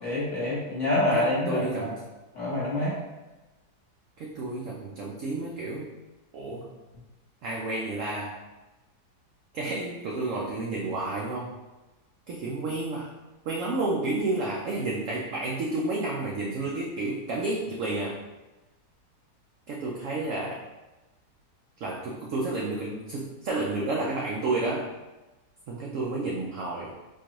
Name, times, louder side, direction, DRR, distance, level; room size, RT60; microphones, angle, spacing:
voice 1, 0.0-1.9 2.3-3.0, left 1 dB, 45° left, -8 dB, 1.5 m, -26 dB
voice 2, 1.1-2.0 4.2-5.9 6.3-6.7 7.4-8.4 9.5-11.6 12.3-13.1 13.4-18.2 19.7-20.7 21.8-24.9 25.7-26.9, right 2 dB, 80° right, -2 dB, 0.7 m, -31 dB
4.4 x 2.3 x 2.9 m, 1.1 s
omnidirectional pair, 1.9 m